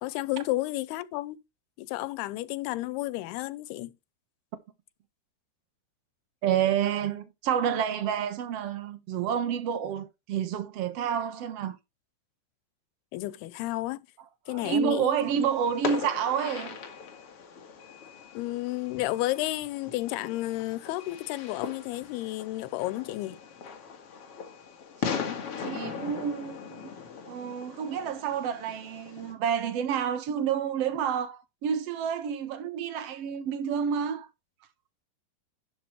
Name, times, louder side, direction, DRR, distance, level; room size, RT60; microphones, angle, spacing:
voice 1, 0.0-1.4 1.8-3.9 13.1-14.0 14.5-15.2 18.3-23.4, left 17 dB, 90° left, 2.7 m, -32 dB
voice 2, 6.4-11.8 14.5-16.8 25.0-26.8 27.3-34.3, right 8 dB, 70° right, 1.5 m, -29 dB
Fireworks, 15.1-29.3, left 6 dB, 50° left, 2.0 m, -39 dB
11.5 x 7.8 x 3.1 m
omnidirectional pair, 4.5 m